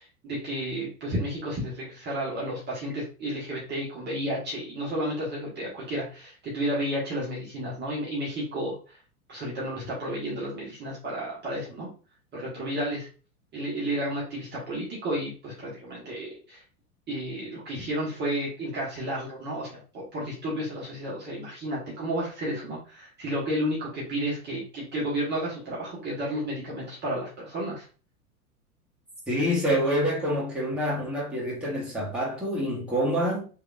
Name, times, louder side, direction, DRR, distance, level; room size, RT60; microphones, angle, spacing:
voice 1, 0.2-9.0 9.3-11.9 12.3-13.1 13.5-16.6 17.1-27.9, equal, 25° right, 1.3 m, -32 dB
voice 2, 29.3-33.5, equal, ahead, 1.5 m, -27 dB
3.4 x 3.2 x 2.4 m
figure-of-eight pair, 90°, 45 cm